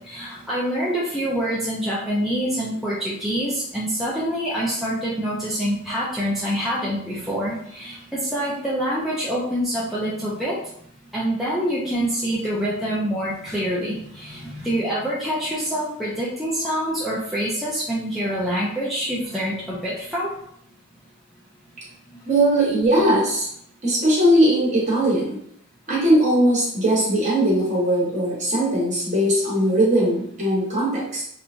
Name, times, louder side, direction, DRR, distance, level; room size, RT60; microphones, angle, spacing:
voice 1, 0.0-10.6 11.1-20.3, equal, ahead, -8 dB, 0.4 m, -26 dB
voice 2, 22.2-23.5 23.8-25.4 25.9-31.2, right 1 dB, 35° right, -6 dB, 1.1 m, -19 dB
3.0 x 2.3 x 2.4 m, 0.67 s
head